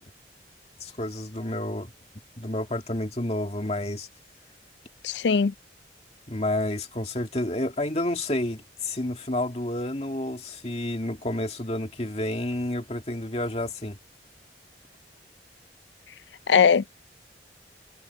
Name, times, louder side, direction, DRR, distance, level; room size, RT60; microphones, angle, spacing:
voice 1, 0.8-1.9 2.4-4.1 6.3-14.0, left 1 dB, 35° left, 2.3 m, -30 dB
voice 2, 5.0-5.5 16.5-16.9, left 6 dB, 80° left, 0.4 m, -20 dB
head